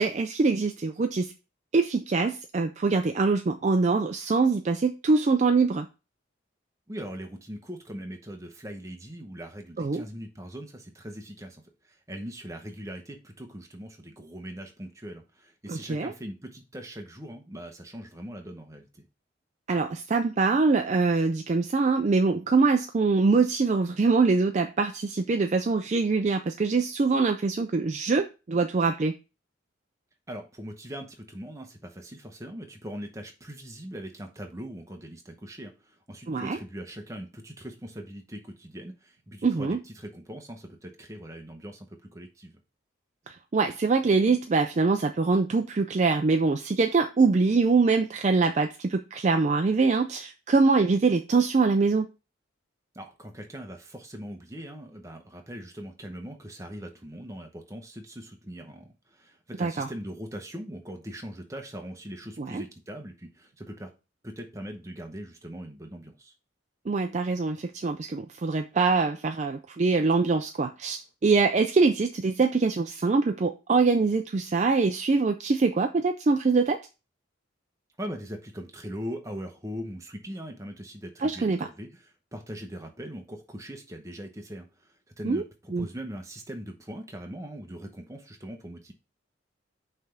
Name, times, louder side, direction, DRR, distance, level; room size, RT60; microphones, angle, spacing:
voice 1, 0.0-1.3 1.7-5.9 9.8-10.0 15.7-16.1 19.7-29.1 36.3-36.6 39.4-39.8 43.3-52.1 59.6-59.9 62.4-62.6 66.9-76.8 81.2-81.6 85.2-85.4 85.7-85.9, right 4 dB, 35° right, 7 dB, 0.4 m, -24 dB
voice 2, 6.9-19.1 30.3-42.5 52.9-63.9 64.2-66.3 78.0-88.9, equal, 15° right, 3 dB, 0.9 m, -41 dB
5.8 x 3.3 x 5.8 m, 0.30 s
head